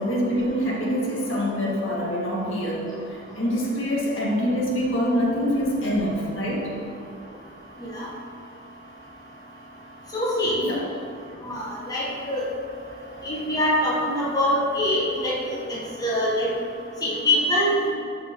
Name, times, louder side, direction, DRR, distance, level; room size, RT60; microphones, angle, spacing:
voice 1, 0.0-6.7 10.4-10.8, equal, 70° left, -3 dB, 2.0 m, -25 dB
voice 2, 10.1-10.5 11.5-12.5 13.2-15.6 16.0-16.5 17.0-17.9, left 1 dB, 20° left, -5 dB, 1.4 m, -24 dB
12.0 x 5.5 x 4.6 m, 2.4 s
head